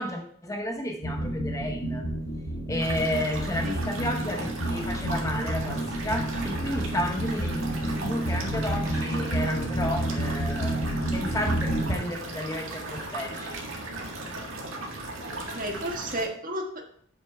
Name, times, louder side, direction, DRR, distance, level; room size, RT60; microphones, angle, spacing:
voice 1, 0.0-2.1 2.7-10.8 11.1-13.6, left 1 dB, 15° left, 0.8 m, -32 dB
sound 1, 1.0-12.0, right 1 dB, 60° left, 1.5 m, -30 dB
sound 2, 2.8-16.3, right 2 dB, 75° right, 1.8 m, -37 dB
voice 2, 15.3-16.8, right 1 dB, 45° right, 1.5 m, -33 dB
8.2 x 6.4 x 4.6 m
head